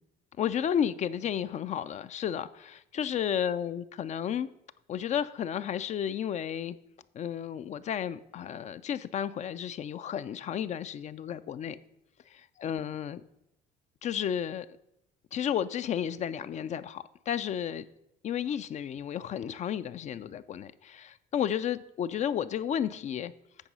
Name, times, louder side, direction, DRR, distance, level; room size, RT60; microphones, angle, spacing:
voice 1, 0.4-4.5 4.9-6.8 7.1-11.8 12.3-13.2 14.0-14.7 15.3-17.9 18.2-23.3, left 9 dB, 45° left, 0.4 m, -32 dB
8.9 x 4.8 x 5.4 m
cardioid pair, 110°, 17 cm